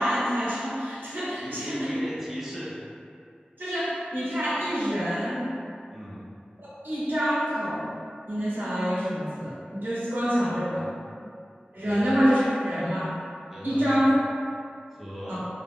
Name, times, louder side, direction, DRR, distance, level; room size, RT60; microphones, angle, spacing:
voice 1, 0.0-2.0 3.6-5.5 6.6-8.0 8.3-10.8 11.7-13.1 13.6-14.1 15.3-15.4, equal, 70° right, -10 dB, 0.9 m, -26 dB
voice 2, 1.3-2.8 3.6-3.7 5.9-6.3 10.7-11.1 11.8-12.1 13.5-14.1 14.9-15.4, equal, 5° right, -8 dB, 0.6 m, -38 dB
2.3 x 2.1 x 3.4 m, 2.4 s
wide cardioid pair, 40°, 4 cm